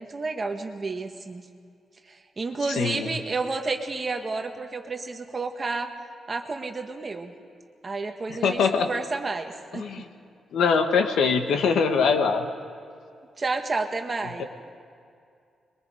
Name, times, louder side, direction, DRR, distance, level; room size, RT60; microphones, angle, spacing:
voice 1, 0.0-1.4 2.1-5.9 6.3-7.3 7.8-9.8 13.4-14.4, right 3 dB, 25° right, 4 dB, 1.4 m, -31 dB
voice 2, 2.7-3.1 8.3-8.9 9.7-10.0 10.5-12.4, left 5 dB, 90° left, 6 dB, 1.5 m, -23 dB
26.0 x 22.5 x 5.0 m, 2.3 s
wide cardioid pair, 160°, 0 cm